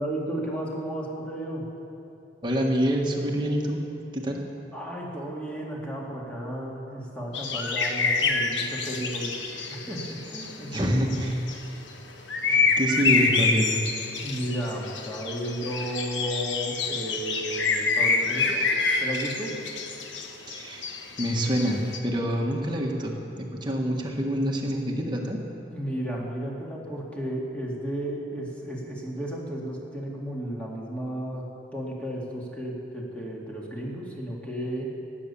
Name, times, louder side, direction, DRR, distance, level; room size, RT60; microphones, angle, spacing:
voice 1, 0.0-1.7 4.7-9.4 9.8-10.8 14.2-18.7 19.0-19.6 25.7-34.9, right 1 dB, 5° left, -4 dB, 2.2 m, -33 dB
voice 2, 2.4-3.8 4.1-4.4 10.7-11.4 12.4-13.8 20.5-20.9 21.2-25.4, equal, 25° right, 0 dB, 1.5 m, -26 dB
sound 1, 7.3-11.6 12.3-22.0, left 4 dB, 75° left, 1.2 m, -27 dB
18.0 x 8.6 x 7.0 m, 2.8 s
head